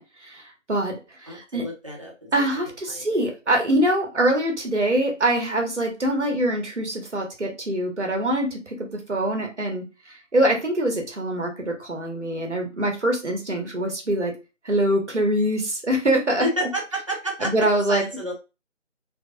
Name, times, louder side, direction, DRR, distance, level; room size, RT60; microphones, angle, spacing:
voice 1, 0.0-1.6 2.3-14.3 14.6-16.7 17.4-18.0, right 1 dB, 65° right, 1 dB, 1.3 m, -24 dB
voice 2, 1.3-2.3 2.9-3.3 16.4-17.5 17.9-18.3, right 1 dB, 25° right, -2 dB, 0.9 m, -30 dB
3.3 x 2.4 x 3.7 m, 0.28 s
figure-of-eight pair, 160°, 38 cm